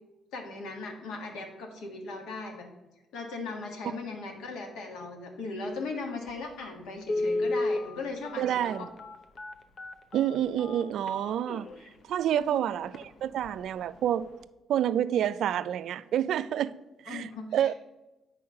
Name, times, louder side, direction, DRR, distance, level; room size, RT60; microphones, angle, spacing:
voice 1, 0.3-2.7 3.1-8.7 12.3-12.6 17.1-17.7, left 3 dB, 85° left, 1.6 m, -38 dB
Telephone, 6.3-6.4 7.0-11.9 12.4-12.5 12.9-13.1 13.4-13.7 14.0-14.1, left 2 dB, 50° left, 0.7 m, -33 dB
voice 2, 8.4-8.9 10.1-11.7 12.1-14.3 14.7-16.8 17.0-17.7, right 10 dB, 75° right, 0.3 m, -28 dB
8.5 x 4.7 x 5.7 m
cardioid pair, 90°, 0 cm